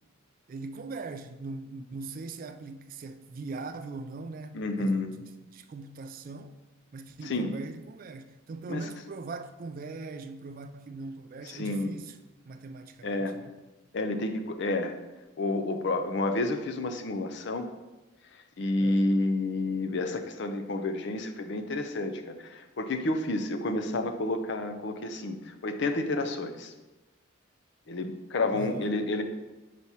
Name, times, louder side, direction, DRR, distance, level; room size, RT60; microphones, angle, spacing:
voice 1, 0.5-5.0 5.5-6.6 6.9-12.2 12.5-13.6 18.8-19.1 28.5-28.9, right 3 dB, 45° right, 0.3 m, -41 dB
voice 2, 4.5-5.1 7.2-7.5 8.7-8.8 11.5-11.9 13.0-13.3 13.9-15.0 15.4-17.7 18.6-26.7 27.9-29.2, left 2 dB, 60° left, 0.5 m, -30 dB
4.6 x 4.2 x 5.6 m
head